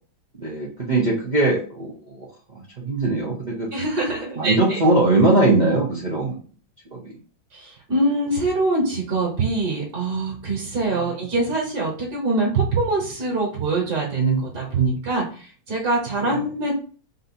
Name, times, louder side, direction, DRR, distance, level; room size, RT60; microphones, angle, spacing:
voice 1, 0.4-2.3 2.8-3.7 4.4-6.3 6.9-7.1 10.9-11.1 16.2-16.4, right 2 dB, 70° right, -4 dB, 0.4 m, -21 dB
voice 2, 3.7-4.8 7.5-16.7, right 2 dB, 50° right, -3 dB, 1.6 m, -24 dB
4.0 x 2.7 x 4.2 m, 0.40 s
omnidirectional pair, 2.3 m